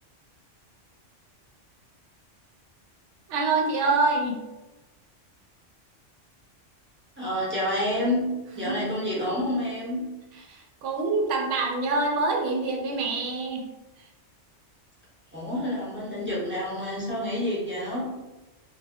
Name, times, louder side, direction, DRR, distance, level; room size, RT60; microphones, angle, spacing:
voice 1, 3.3-4.4 8.6-8.7 10.5-13.6, right 3 dB, 85° right, 1 dB, 0.9 m, -25 dB
voice 2, 7.2-10.0 15.3-18.1, left 1 dB, 15° right, -7 dB, 0.6 m, -28 dB
2.3 x 2.0 x 3.5 m, 1.1 s
omnidirectional pair, 1.2 m